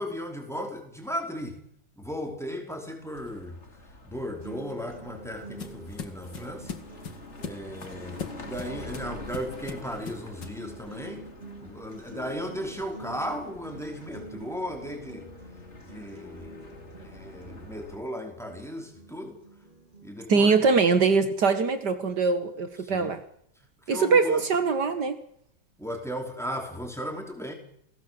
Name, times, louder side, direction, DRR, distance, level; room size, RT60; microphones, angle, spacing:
voice 1, 0.0-1.6 2.0-3.6 4.0-6.7 7.4-11.2 11.6-15.3 15.8-19.4 20.0-20.5 22.8-23.1 23.9-24.4 25.8-27.5, equal, ahead, 3 dB, 5.1 m, -36 dB
sound 1, 3.1-18.0, left 2 dB, 40° left, 3.2 m, -47 dB
sound 2, 4.1-20.1, right 2 dB, 25° right, 4.7 m, -47 dB
sound 3, 4.6-10.7, left 6 dB, 85° left, 2.7 m, -41 dB
voice 2, 20.3-23.2 23.9-25.2, right 4 dB, 70° right, 10 dB, 2.3 m, -22 dB
29.0 x 19.0 x 7.9 m, 0.71 s
omnidirectional pair, 1.9 m